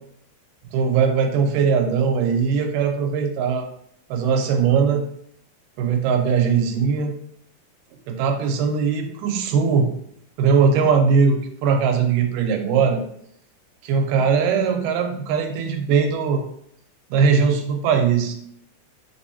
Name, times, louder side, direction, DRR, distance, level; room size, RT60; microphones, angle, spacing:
voice 1, 0.7-3.7 4.1-5.0 5.8-7.1 8.1-9.9 10.4-13.0 13.8-16.4 17.1-18.3, right 6 dB, 85° right, 4 dB, 2.3 m, -20 dB
4.9 x 3.4 x 2.8 m, 0.69 s
omnidirectional pair, 3.7 m